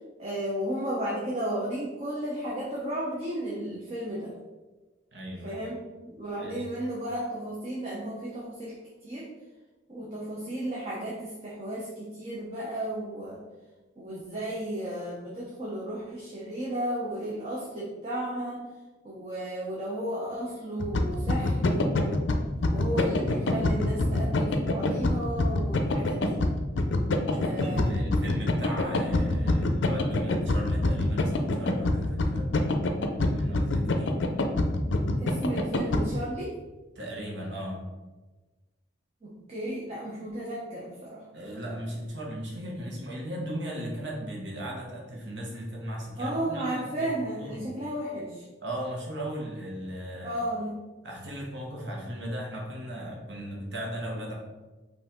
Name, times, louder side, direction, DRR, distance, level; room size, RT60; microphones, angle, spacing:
voice 1, 0.2-4.3 5.4-5.9 6.1-8.7 9.0-9.3 9.9-13.4 14.0-18.7 19.0-22.2 22.7-26.4 27.3-27.9 35.2-36.5 39.2-41.2 46.2-48.4 50.2-50.7, right 1 dB, 35° right, -6 dB, 0.8 m, -34 dB
voice 2, 5.1-5.6 6.4-6.6 27.3-32.5 33.1-34.2 36.9-37.8 41.3-47.7 48.6-50.4 51.0-54.3, equal, 70° right, -1 dB, 1.2 m, -37 dB
sound 1, 20.8-36.0, left 2 dB, 75° left, 0.5 m, -25 dB
5.3 x 2.7 x 3.6 m, 1.2 s
head